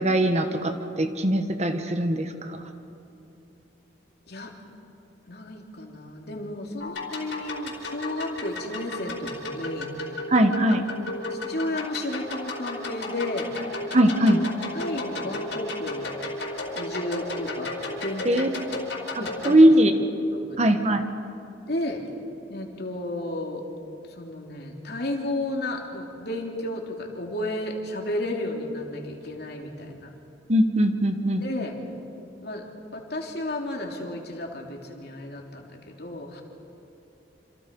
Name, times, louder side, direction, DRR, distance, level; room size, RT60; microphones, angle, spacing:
voice 1, 0.0-2.6 10.3-10.8 13.9-14.4 18.2-18.5 19.1-19.9 20.6-21.0 30.5-31.4, right 1 dB, 35° right, 7 dB, 1.4 m, -20 dB
voice 2, 5.3-10.2 11.3-13.5 14.7-16.1 16.7-17.7 18.0-18.5 19.2-19.6 20.3-20.8 21.7-22.0 22.5-23.6 24.2-30.1 31.4-31.8 32.4-32.7 32.9-36.4, left 1 dB, 60° left, 1 dB, 3.2 m, -33 dB
sound 1, 6.8-19.5, left 2 dB, 75° left, 4.6 m, -34 dB
27.5 x 27.0 x 5.4 m, 2.8 s
head